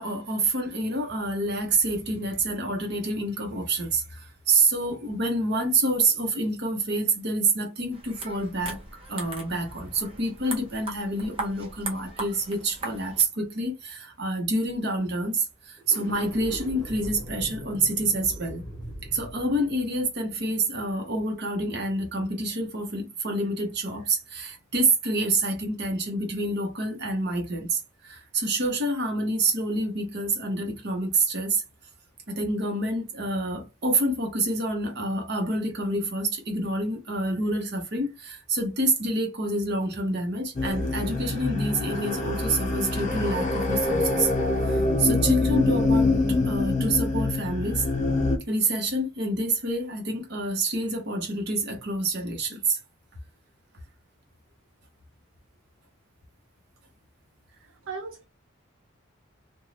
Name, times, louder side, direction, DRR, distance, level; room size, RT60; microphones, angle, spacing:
voice 1, 0.0-8.8 9.1-18.6 19.0-31.6 32.3-44.3 44.6-46.1 46.5-47.9 48.5-52.8, right 2 dB, 55° right, 0.9 m, -27 dB
sound 1, 7.9-13.2, right 3 dB, 25° right, 0.7 m, -39 dB
sound 2, 15.8-21.1, equal, 20° left, 1.0 m, -40 dB
sound 3, 40.5-48.4, left 2 dB, 35° left, 0.5 m, -25 dB
voice 2, 57.6-58.3, right 4 dB, 70° right, 0.4 m, -38 dB
2.6 x 2.3 x 3.1 m
head